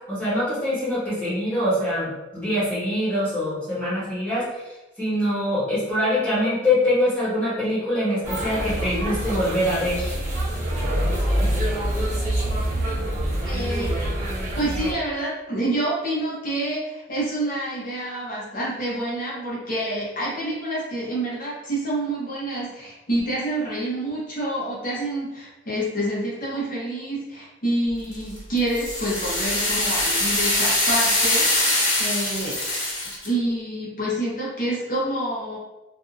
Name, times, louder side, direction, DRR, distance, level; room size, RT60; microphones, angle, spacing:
voice 1, 0.1-4.4 5.0-10.1 11.4-11.5, left 1 dB, 10° left, -12 dB, 1.3 m, -24 dB
sound 1, 8.2-14.9, right 1 dB, 35° right, 0.9 m, -25 dB
voice 2, 13.4-14.0 14.6-32.6 33.2-35.6, right 1 dB, 45° left, -6 dB, 0.9 m, -27 dB
sound 2, 28.1-33.3, left 1 dB, 80° left, 1.3 m, -23 dB
2.6 x 2.5 x 2.5 m, 1.1 s
head